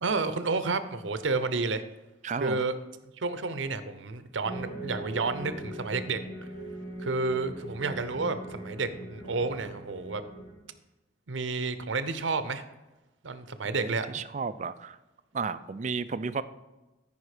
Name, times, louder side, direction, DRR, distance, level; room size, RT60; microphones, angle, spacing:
voice 1, 0.0-1.8 2.4-2.7 3.2-6.2 7.0-10.2 11.3-12.6 13.2-14.1, right 3 dB, 80° right, 11 dB, 0.8 m, -30 dB
voice 2, 2.2-2.6 13.8-15.0 15.3-16.4, right 5 dB, 40° right, 13 dB, 0.4 m, -33 dB
sound 1, 4.4-10.5, right 1 dB, 60° left, 3.4 m, -41 dB
13.5 x 5.4 x 5.0 m, 1.1 s
head